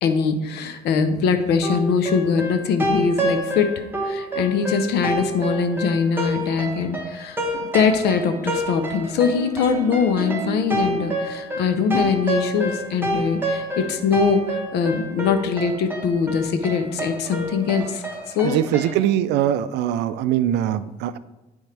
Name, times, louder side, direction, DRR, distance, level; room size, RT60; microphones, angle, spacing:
voice 1, 0.0-3.7 4.0-7.4 7.7-18.0 18.3-18.6, left 6 dB, 75° left, 8 dB, 0.7 m, -22 dB
sound 1, 1.6-19.0, right 1 dB, 10° right, 1.1 m, -28 dB
voice 2, 18.4-21.2, right 11 dB, 80° right, 14 dB, 0.4 m, -22 dB
10.0 x 3.5 x 3.3 m, 0.99 s
cardioid pair, 110°, 17 cm